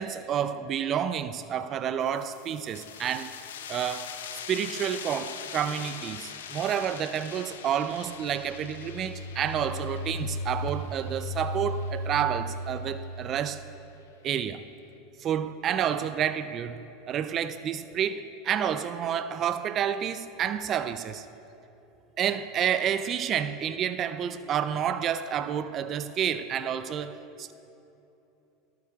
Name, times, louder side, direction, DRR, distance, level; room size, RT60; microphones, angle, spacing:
voice 1, 0.0-3.3 3.7-4.1 4.5-13.6 14.2-14.6 15.2-21.3 22.2-27.5, right 9 dB, 40° right, 0.5 m, -29 dB
sound 1, 2.0-13.3, left 8 dB, 80° left, 0.9 m, -43 dB
sound 2, 8.0-13.7, equal, 25° left, 2.6 m, -36 dB
22.0 x 14.0 x 2.4 m
hypercardioid pair, 90°, 0 cm